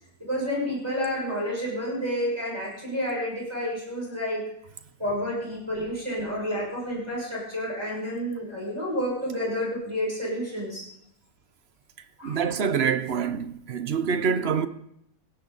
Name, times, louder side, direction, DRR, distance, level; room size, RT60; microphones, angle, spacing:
voice 1, 0.3-4.4 5.0-10.8 12.2-12.4, equal, 20° right, 6.3 m, -30 dB
voice 2, 12.2-14.7, right 6 dB, 50° right, 1.0 m, -26 dB
18.5 x 17.5 x 4.0 m
omnidirectional pair, 1.4 m